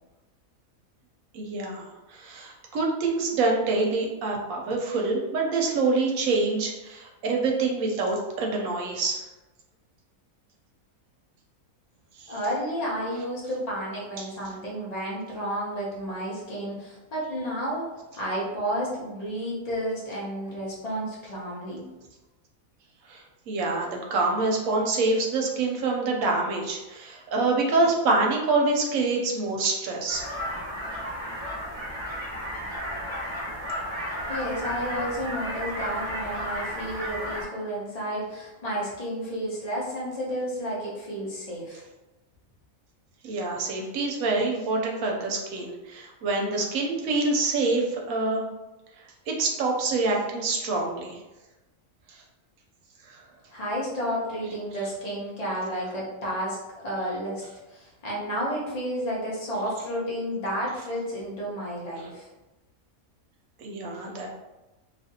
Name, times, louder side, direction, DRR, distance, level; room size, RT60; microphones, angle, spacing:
voice 1, 1.3-9.2 12.2-12.3 14.2-14.3 23.1-30.3 43.2-48.5 49.3-51.2 52.1-52.2 53.1-53.2 62.0-62.1 63.6-64.3, right 3 dB, 75° right, 0 dB, 1.0 m, -26 dB
voice 2, 12.3-21.8 34.2-41.8 53.5-62.3, equal, 35° left, -5 dB, 0.7 m, -31 dB
sound 1, 30.1-37.4, equal, 10° right, 1.0 m, -33 dB
2.7 x 2.5 x 2.7 m, 1.1 s
omnidirectional pair, 1.5 m